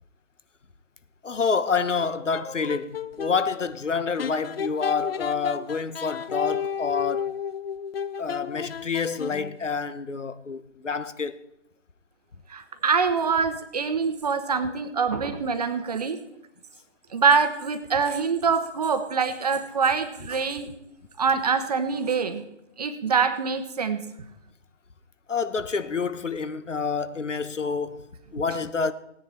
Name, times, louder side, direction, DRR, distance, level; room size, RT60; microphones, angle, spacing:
voice 1, 1.2-7.3 8.2-11.4 25.3-28.0 28.3-28.9, left 5 dB, 80° left, 1.1 m, -28 dB
sound 1, 2.0-3.4 4.2-9.6, left 7 dB, 55° left, 0.5 m, -33 dB
voice 2, 12.5-16.2 17.1-20.7 21.2-22.4 22.8-24.0, right 5 dB, 35° right, 0.9 m, -24 dB
17.0 x 9.9 x 4.3 m
figure-of-eight pair, 150°, 37 cm